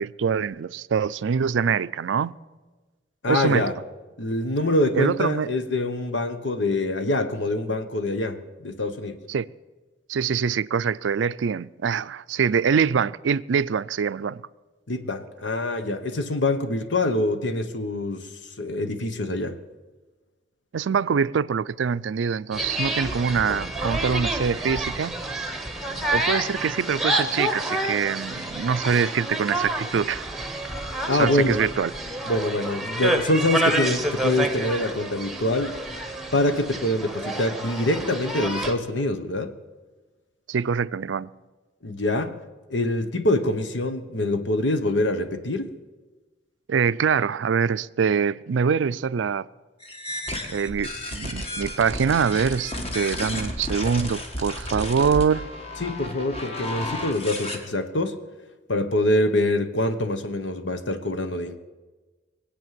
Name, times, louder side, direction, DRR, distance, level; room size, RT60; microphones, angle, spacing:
voice 1, 0.0-2.4 3.3-3.7 4.9-5.5 9.3-9.5 10.1-14.4 20.7-25.2 26.1-30.2 31.1-31.9 40.5-41.3 46.7-49.5 50.5-55.5, right 6 dB, 80° right, 0.4 m, -24 dB
voice 2, 3.2-3.7 4.2-9.2 14.9-18.3 18.6-19.6 31.1-31.6 32.3-35.7 36.3-39.5 41.8-42.4 42.7-45.7 55.8-58.2 58.7-61.6, left 1 dB, 75° left, 1.1 m, -25 dB
sound 1, 22.5-38.7, right 1 dB, ahead, 1.2 m, -28 dB
sound 2, 49.8-57.6, left 1 dB, 35° left, 1.7 m, -32 dB
21.0 x 8.5 x 7.6 m
head